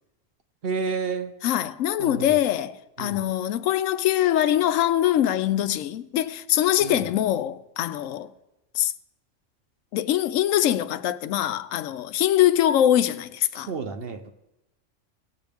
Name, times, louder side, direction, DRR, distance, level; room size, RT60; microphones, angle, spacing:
voice 1, 0.6-1.3 2.0-2.4 3.0-3.2 6.8-7.0 13.6-14.3, right 5 dB, 55° right, 0.9 m, -30 dB
voice 2, 1.4-8.3 8.7-8.9 9.9-13.7, left 12 dB, 85° left, 1.0 m, -23 dB
18.0 x 7.7 x 3.5 m
omnidirectional pair, 1.3 m